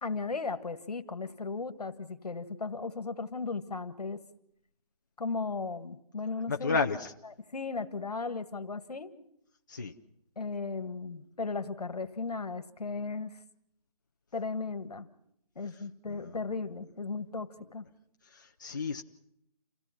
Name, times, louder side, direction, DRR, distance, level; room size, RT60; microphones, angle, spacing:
voice 1, 0.0-4.2 5.2-6.8 7.5-9.1 10.4-13.4 14.3-15.1 15.5-17.9, left 4 dB, 75° left, 11 dB, 1.7 m, -36 dB
voice 2, 6.5-7.1 9.7-9.9 16.1-16.4 18.3-19.0, left 4 dB, 30° left, 2 dB, 0.7 m, -32 dB
28.5 x 16.0 x 5.8 m, 0.77 s
hypercardioid pair, 175°, 20 cm